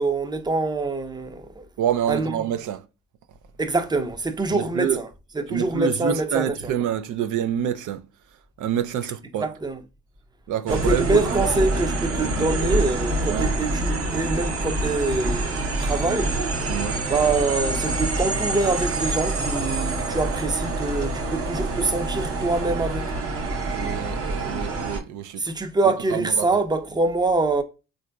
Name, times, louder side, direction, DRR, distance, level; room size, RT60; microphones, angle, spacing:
voice 1, 0.0-1.6 2.1-2.3 3.6-5.1 5.4-6.5 9.4-9.8 10.7-16.3 17.1-23.1 25.4-27.6, right 3 dB, 15° right, 0.5 m, -25 dB
voice 2, 1.8-2.8 4.5-5.0 5.5-8.0 8.6-9.5 10.5-11.2 13.3-13.5 16.7-17.0 23.7-25.5 26.1-26.5, right 9 dB, 75° right, 0.5 m, -27 dB
sound 1, 10.7-25.0, right 2 dB, 50° right, 0.8 m, -26 dB
3.6 x 2.6 x 2.2 m
cardioid pair, 90°, 30 cm